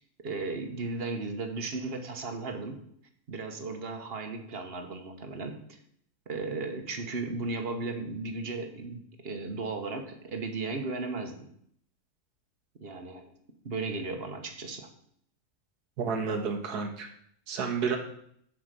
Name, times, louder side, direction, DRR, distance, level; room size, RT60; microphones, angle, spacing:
voice 1, 0.2-2.8 3.3-5.8 6.3-11.5 12.8-13.3 13.6-14.9, right 3 dB, 40° right, 6 dB, 1.2 m, -35 dB
voice 2, 16.0-17.1 17.5-18.0, right 5 dB, 85° right, 4 dB, 1.8 m, -30 dB
7.7 x 5.1 x 6.7 m, 0.67 s
omnidirectional pair, 1.6 m